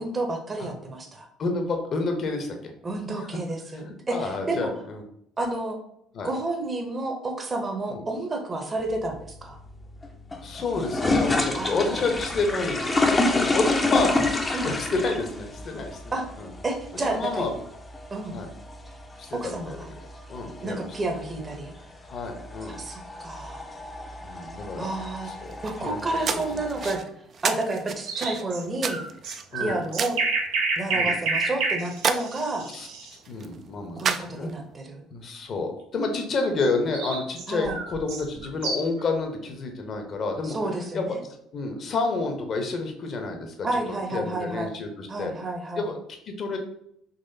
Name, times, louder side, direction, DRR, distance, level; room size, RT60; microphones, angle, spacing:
voice 1, 0.0-1.3 2.8-4.7 5.4-5.8 6.2-9.6 11.6-12.2 14.5-14.7 16.1-16.3 16.6-17.5 18.1-18.3 19.3-19.9 20.6-21.7 22.6-23.7 24.8-25.3 25.6-27.0 27.4-29.0 29.6-30.2 30.8-32.7 34.0-35.1 37.5-37.8 40.4-41.2 43.6-44.7 45.1-45.9, right 2 dB, 30° right, 3 dB, 0.8 m, -30 dB
voice 2, 1.4-2.7 3.2-3.3 3.7-5.0 6.1-6.3 7.9-8.0 10.4-14.4 14.6-16.5 16.9-17.5 18.3-18.5 19.2-19.8 20.3-20.9 22.1-22.8 24.2-24.9 25.2-25.5 25.8-26.9 29.5-29.8 30.9-31.2 32.7-32.9 33.3-34.5 35.1-40.6 40.9-41.2 41.5-45.3 45.8-46.6, left 3 dB, 50° left, 4 dB, 0.9 m, -30 dB
sound 1, 8.8-27.0, left 2 dB, 25° left, 0.6 m, -29 dB
sound 2, 25.5-34.8, right 6 dB, 45° right, 0.3 m, -33 dB
sound 3, 28.0-33.1 36.6-39.0, right 3 dB, 75° right, 0.7 m, -29 dB
4.1 x 3.0 x 2.7 m, 0.72 s
hypercardioid pair, 60°, 0 cm